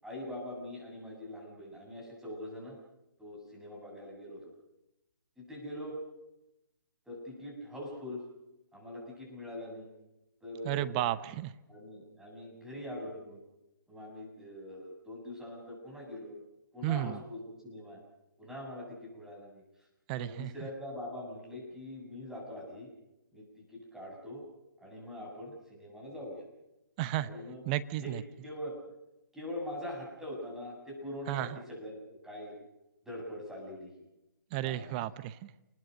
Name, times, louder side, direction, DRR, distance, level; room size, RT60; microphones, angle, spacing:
voice 1, 0.0-2.8 3.2-4.5 5.4-6.0 7.1-8.2 8.7-9.9 10.4-11.0 11.7-13.4 13.9-16.3 16.7-18.0 18.4-19.6 20.1-22.9 23.3-24.4 24.8-26.4 27.2-27.6 28.0-28.2 28.4-28.7 29.3-32.5 33.0-34.1 34.5-34.9, left 1 dB, 5° right, -2 dB, 7.7 m, -43 dB
voice 2, 10.6-11.5 16.8-17.2 20.1-20.5 27.0-27.3 27.7-28.2 31.3-31.6 34.5-35.5, right 14 dB, 25° right, 14 dB, 0.8 m, -33 dB
28.5 x 20.0 x 6.6 m, 0.91 s
figure-of-eight pair, 145°, 12 cm